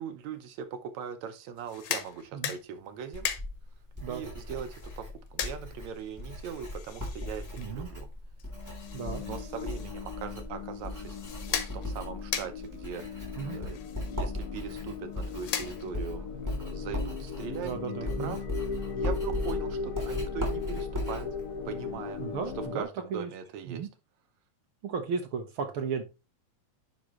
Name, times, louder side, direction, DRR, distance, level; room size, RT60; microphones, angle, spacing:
voice 1, 0.0-3.3 4.1-8.1 9.1-11.2 11.5-13.8 14.1-18.4 19.0-21.4 21.7-22.2 22.6-23.9, right 7 dB, 75° right, 2.1 m, -40 dB
sound 1, 1.5-16.2, left 9 dB, 80° left, 2.4 m, -40 dB
Writing, 3.1-22.7, left 1 dB, 5° right, 2.9 m, -38 dB
voice 2, 7.6-7.9 8.9-9.2 13.4-13.6 17.6-18.4 22.2-23.3 23.7-23.9 24.8-26.0, right 6 dB, 55° right, 1.7 m, -35 dB
sound 2, 8.5-22.8, left 5 dB, 50° left, 2.2 m, -38 dB
10.5 x 5.1 x 3.1 m
omnidirectional pair, 3.4 m